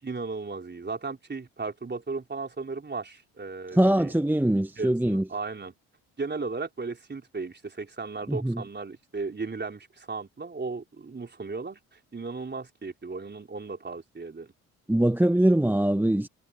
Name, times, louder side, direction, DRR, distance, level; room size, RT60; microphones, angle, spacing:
voice 1, 0.0-4.1 4.8-5.7 6.2-14.5, right 4 dB, 30° right, 3.9 m, -36 dB
voice 2, 3.8-5.2 8.3-8.6 14.9-16.3, right 1 dB, 5° right, 1.1 m, -22 dB
hypercardioid pair, 50°, 37 cm